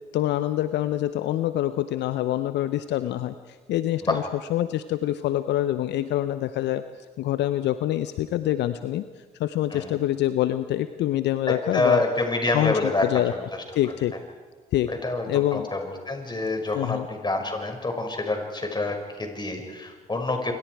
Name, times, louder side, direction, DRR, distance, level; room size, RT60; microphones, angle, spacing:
voice 1, 0.1-4.2 4.5-6.8 7.2-12.0 12.5-13.3 13.7-14.1 14.7-14.9 15.3-15.7 16.7-17.1, left 13 dB, 65° left, 12 dB, 0.8 m, -25 dB
voice 2, 11.5-13.1 13.5-13.6 14.9-20.5, left 2 dB, 20° left, 3 dB, 5.8 m, -27 dB
27.0 x 25.0 x 4.8 m, 1.4 s
hypercardioid pair, 50°, 20 cm